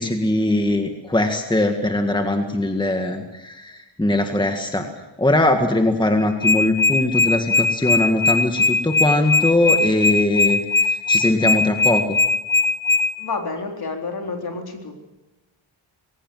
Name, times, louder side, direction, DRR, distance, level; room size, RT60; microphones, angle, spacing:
voice 1, 0.0-4.8 5.2-12.2, left 1 dB, 10° left, 5 dB, 1.8 m, -21 dB
sound 1, 6.2-13.0, left 2 dB, 75° left, 2.0 m, -18 dB
voice 2, 13.2-14.9, left 3 dB, 50° left, 3 dB, 4.0 m, -29 dB
21.0 x 18.5 x 7.9 m, 1.0 s
cardioid pair, 95°, 47 cm